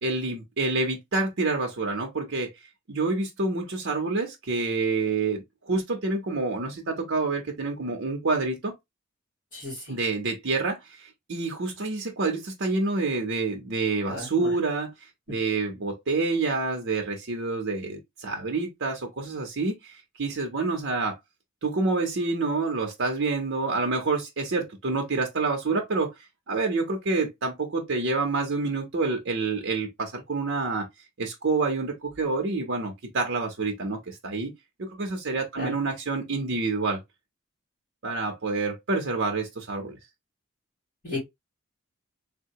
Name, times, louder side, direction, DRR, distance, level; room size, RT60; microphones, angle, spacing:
voice 1, 0.0-2.5 2.9-8.7 9.9-14.9 15.3-21.2 21.6-26.1 26.5-30.9 31.2-34.5 34.9-37.0 38.0-40.0, right 3 dB, 70° right, 0.7 m, -28 dB
voice 2, 9.5-9.9 14.1-14.5 35.5-35.7 41.0-41.2, left 2 dB, 40° left, 2.3 m, -34 dB
3.5 x 2.2 x 2.7 m
head